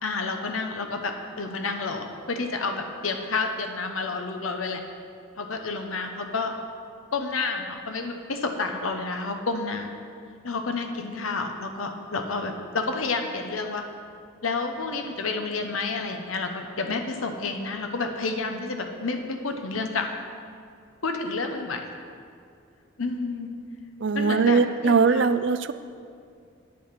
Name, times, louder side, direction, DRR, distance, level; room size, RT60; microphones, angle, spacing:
voice 1, 0.0-4.8 5.4-6.5 7.1-9.9 10.4-13.8 14.4-20.1 21.0-21.8 23.0-23.5 24.1-25.3, left 3 dB, 85° left, 5 dB, 1.0 m, -30 dB
voice 2, 24.0-25.7, right 5 dB, 60° right, 13 dB, 0.4 m, -21 dB
11.0 x 8.7 x 5.8 m, 2.3 s
head